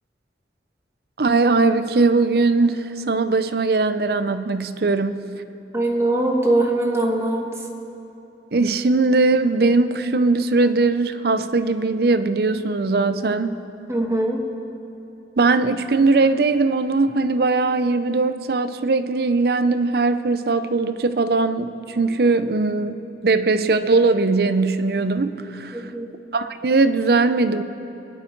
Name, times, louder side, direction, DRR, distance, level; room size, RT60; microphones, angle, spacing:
voice 1, 1.2-5.2 8.5-13.5 15.4-25.8 26.3-27.6, right 3 dB, 60° right, 11 dB, 0.6 m, -20 dB
voice 2, 5.7-7.7 13.9-14.4 25.7-26.1, right 1 dB, 15° right, 1 dB, 1.4 m, -22 dB
23.5 x 10.5 x 4.6 m, 3.0 s
head